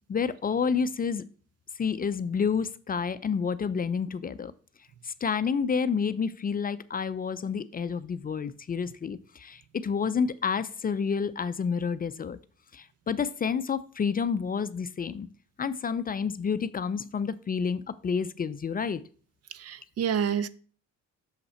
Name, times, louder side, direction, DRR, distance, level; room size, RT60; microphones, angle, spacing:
voice 1, 0.1-1.2 1.8-4.5 5.0-12.4 12.7-15.3 15.6-19.0, left 6 dB, 30° left, 13 dB, 0.4 m, -29 dB
voice 2, 19.5-20.5, right 8 dB, 55° right, 17 dB, 0.5 m, -28 dB
6.6 x 5.4 x 4.2 m, 0.43 s
cardioid pair, 90°, 30 cm